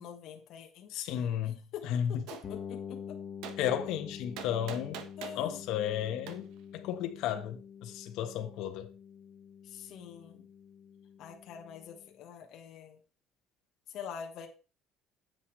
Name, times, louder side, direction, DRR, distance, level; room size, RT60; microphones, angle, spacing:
voice 1, 0.0-0.9 1.7-3.2 5.2-5.6 9.6-10.4 11.2-13.0 13.9-14.5, left 8 dB, 55° left, 1.3 m, -45 dB
voice 2, 0.9-2.1 3.6-5.0 5.3-8.9, left 10 dB, 70° left, 1.2 m, -33 dB
Gunshot gunfire, 2.3-2.5 3.4-3.6 4.4-5.4 6.3-6.4, right 9 dB, 80° right, 1.1 m, -43 dB
sound 1, 2.4-12.1, left 7 dB, 35° left, 1.3 m, -47 dB
9.5 x 7.9 x 3.2 m
cardioid pair, 165°, 0 cm